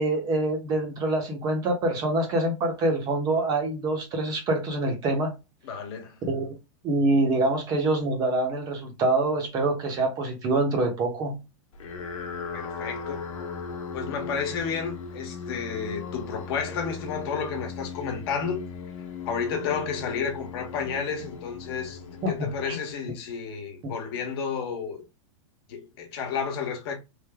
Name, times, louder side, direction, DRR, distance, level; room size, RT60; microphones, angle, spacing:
voice 1, 0.0-5.3 6.2-6.5 6.8-11.4 22.2-22.8 23.8-23.9, right 2 dB, 25° right, 0.8 m, -25 dB
voice 2, 5.6-6.2 12.5-13.2 13.9-18.7 19.2-22.0 22.3-25.0 25.7-27.0, left 6 dB, 50° left, 1.1 m, -31 dB
sound 1, 11.7-23.2, left 5 dB, 80° left, 0.9 m, -38 dB
3.3 x 2.0 x 3.4 m
supercardioid pair, 165°, 17 cm